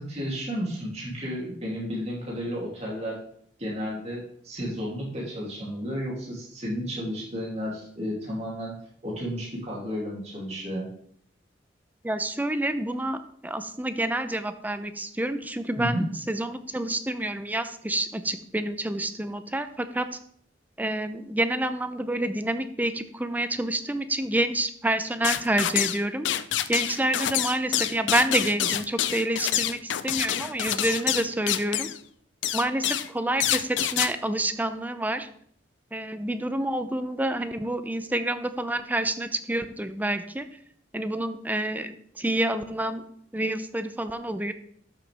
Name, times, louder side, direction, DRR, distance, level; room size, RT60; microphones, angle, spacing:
voice 1, 0.0-3.2 3.6-8.7 9.0-10.9 15.8-16.1, equal, 35° right, -5 dB, 2.9 m, -32 dB
voice 2, 12.0-13.2 13.4-20.1 20.8-26.3 26.7-29.8 30.0-31.9 32.5-35.3 35.9-40.5 40.9-43.0 43.3-44.5, right 1 dB, 10° right, 10 dB, 0.6 m, -28 dB
sound 1, 25.2-26.0 26.3-32.0 32.4-33.1 33.4-34.1, left 11 dB, 85° left, 0.5 m, -27 dB
12.0 x 7.0 x 3.5 m, 0.64 s
head